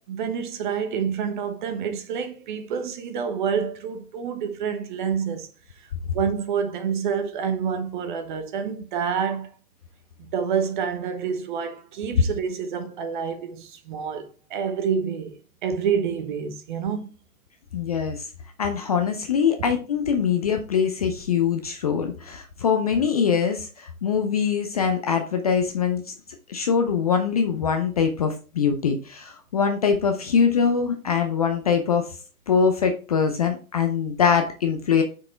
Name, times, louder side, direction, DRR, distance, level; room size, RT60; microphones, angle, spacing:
voice 1, 0.1-5.5 6.1-9.5 10.2-17.1, right 7 dB, 35° right, 1.1 m, -28 dB
voice 2, 17.7-18.3 18.6-26.1 26.5-32.1 32.5-35.0, left 6 dB, 25° left, 0.5 m, -23 dB
5.9 x 4.7 x 4.4 m
figure-of-eight pair, 130°, 44 cm